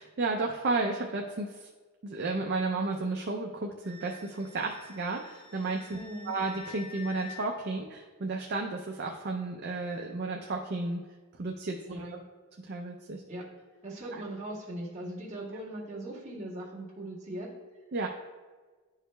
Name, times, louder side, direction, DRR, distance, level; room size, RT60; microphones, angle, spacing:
voice 1, 0.0-1.6 2.0-6.0 6.3-11.0 11.4-11.8 12.7-13.2 14.1-14.2 17.9-18.1, right 3 dB, 45° right, 1 dB, 0.4 m, -32 dB
Wind instrument woodwind instrument, 3.8-7.4, left 4 dB, 60° left, 1.3 m, -49 dB
voice 2, 5.9-6.3 11.8-12.2 13.3-13.5 13.8-17.5, right 1 dB, 30° right, -6 dB, 1.7 m, -39 dB
11.0 x 4.8 x 2.2 m, 1.4 s
head